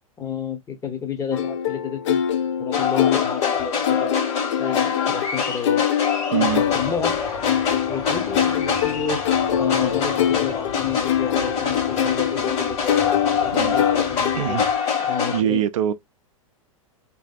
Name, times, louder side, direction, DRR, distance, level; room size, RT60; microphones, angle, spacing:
voice 1, 0.2-2.2 2.6-4.1 4.6-5.8 6.4-7.2 7.9-9.2 9.6-14.6 15.1-15.6, left 7 dB, 20° left, 0.8 m, -30 dB
sound 1, 1.3-14.9, left 9 dB, 55° left, 0.5 m, -25 dB
sound 2, 2.7-15.4, left 6 dB, 35° left, 1.4 m, -25 dB
voice 2, 6.3-6.7 13.5-13.8 14.4-14.6 15.0-15.9, right 11 dB, 60° right, 0.5 m, -24 dB
sound 3, 6.5-14.8, equal, 85° left, 1.2 m, -42 dB
3.2 x 2.7 x 2.3 m
figure-of-eight pair, 100°, 18 cm